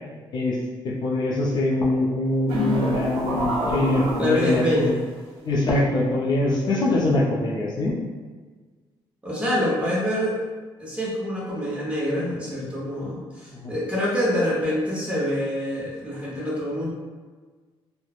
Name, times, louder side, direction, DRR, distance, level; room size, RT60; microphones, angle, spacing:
voice 1, 0.8-5.0 5.4-7.9 13.5-13.7, left 2 dB, 50° left, -4 dB, 0.5 m, -23 dB
sound 1, 2.5-4.9, equal, 75° right, 0.6 m, -27 dB
voice 2, 4.2-5.0 9.2-10.4 10.8-16.9, left 1 dB, 15° right, -6 dB, 0.8 m, -25 dB
3.0 x 2.1 x 2.4 m, 1.4 s
cardioid pair, 125°, 10 cm